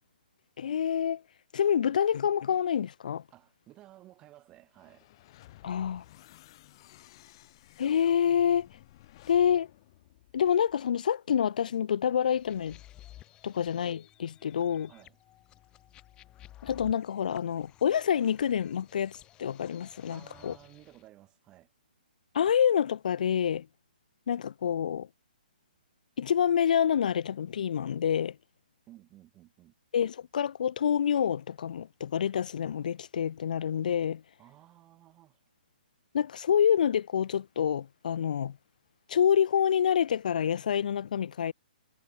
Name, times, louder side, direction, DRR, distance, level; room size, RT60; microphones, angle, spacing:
voice 1, 0.6-1.2 1.5-3.2 5.6-6.0 7.8-8.7 9.3-9.7 10.3-12.8 13.4-14.9 16.6-20.5 22.3-23.7 24.3-25.1 26.2-28.4 29.9-34.2 36.1-38.6 39.1-41.5, left 8 dB, 55° left, 0.3 m, -27 dB
voice 2, 3.3-5.1 14.9-15.2 20.1-21.7 28.9-29.7 34.4-35.4, right 15 dB, 15° right, 5.3 m, -55 dB
sound 1, 4.7-11.0, left 16 dB, 30° left, 4.1 m, -56 dB
sound 2, 12.2-21.0, left 14 dB, 15° left, 5.6 m, -55 dB
hypercardioid pair, 165°, 5 cm